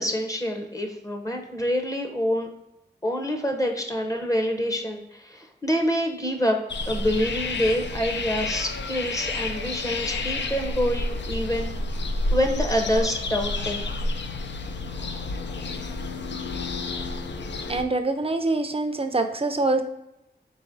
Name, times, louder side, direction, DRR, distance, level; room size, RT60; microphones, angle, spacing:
voice 1, 0.0-2.5 3.0-6.6 6.9-11.7 12.3-13.9 15.0-15.3, equal, 20° left, 2 dB, 0.7 m, -26 dB
sound 1, 6.7-17.8, left 2 dB, 80° left, 0.4 m, -30 dB
voice 2, 17.7-19.8, right 2 dB, 30° right, 7 dB, 0.5 m, -24 dB
4.8 x 3.7 x 2.6 m, 0.90 s
wide cardioid pair, 80°, 18 cm